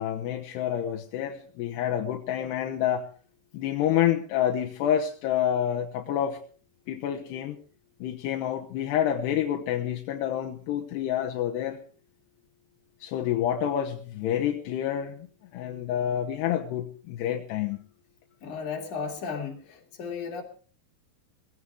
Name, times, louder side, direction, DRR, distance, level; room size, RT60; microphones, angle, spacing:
voice 1, 0.0-3.0 3.5-6.4 6.9-7.6 8.0-11.8 13.0-15.2 15.5-17.8, left 10 dB, 80° left, 2 dB, 3.1 m, -28 dB
voice 2, 18.4-20.4, left 5 dB, 50° left, 1 dB, 4.1 m, -34 dB
18.5 x 16.0 x 3.6 m, 0.42 s
omnidirectional pair, 5.0 m